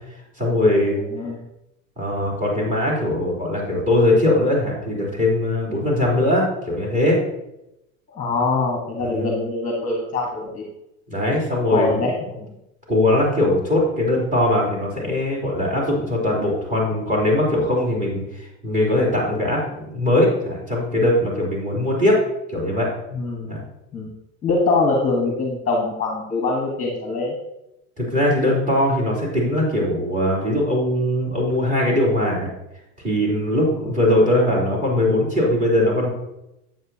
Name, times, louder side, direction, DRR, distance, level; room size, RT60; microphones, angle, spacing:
voice 1, 0.4-1.0 2.0-7.2 9.0-9.3 11.1-12.1 12.9-22.2 22.5-22.9 23.5-23.6 28.0-32.5 33.0-36.1, left 1 dB, 20° right, -4 dB, 3.4 m, -20 dB
voice 2, 8.1-10.6 11.7-12.5 23.1-23.6 23.9-24.1 24.4-27.3, left 3 dB, 20° left, -1 dB, 1.4 m, -23 dB
9.2 x 7.9 x 2.8 m, 0.87 s
supercardioid pair, 135°, 40 cm